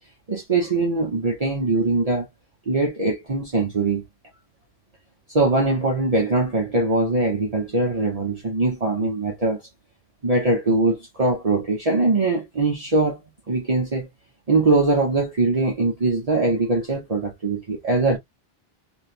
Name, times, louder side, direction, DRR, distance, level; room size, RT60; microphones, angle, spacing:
voice 1, 0.3-2.3 2.7-4.0 5.3-9.6 10.2-13.2 13.5-14.1 14.5-18.2, right 3 dB, 40° right, 1.0 m, -22 dB
3.1 x 2.7 x 2.5 m
omnidirectional pair, 1.0 m